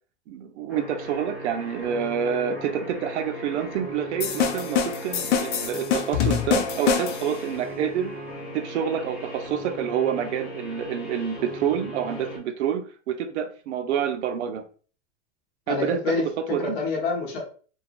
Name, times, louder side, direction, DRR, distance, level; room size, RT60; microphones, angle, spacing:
voice 1, 0.3-8.1 8.5-14.7 15.7-16.8, right 8 dB, 70° right, 0.6 m, -28 dB
sound 1, 0.7-12.4, equal, 5° right, 0.8 m, -38 dB
sound 2, 4.2-7.4, left 7 dB, 80° left, 0.6 m, -25 dB
voice 2, 15.7-17.5, left 4 dB, 30° left, 0.9 m, -27 dB
2.8 x 2.3 x 2.4 m
supercardioid pair, 150°, 36 cm